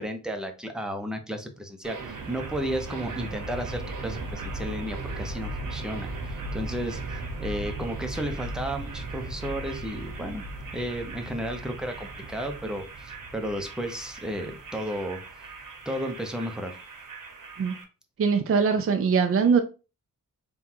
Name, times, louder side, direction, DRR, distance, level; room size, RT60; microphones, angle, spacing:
voice 1, 0.0-10.4 10.7-15.5 15.9-16.7, equal, ahead, 0.7 m, -33 dB
sound 1, 1.8-17.8, right 2 dB, 65° right, 1.1 m, -37 dB
voice 2, 18.2-19.6, right 5 dB, 40° right, 0.4 m, -22 dB
3.8 x 2.3 x 4.4 m
wide cardioid pair, 105°, 34 cm